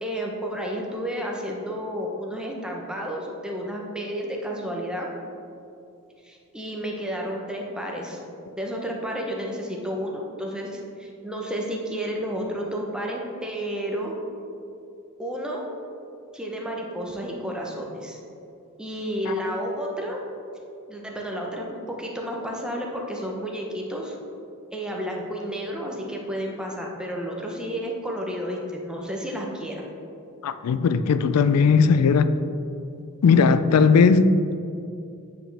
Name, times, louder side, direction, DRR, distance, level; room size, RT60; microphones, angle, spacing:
voice 1, 0.0-5.1 6.2-8.2 8.5-14.2 15.2-15.8 16.3-18.2 18.8-20.2 20.9-24.2 24.7-29.8, equal, 5° right, 0.8 m, -31 dB
voice 2, 30.4-32.3 33.2-34.5, left 5 dB, 90° left, 0.3 m, -18 dB
8.7 x 4.9 x 3.3 m
head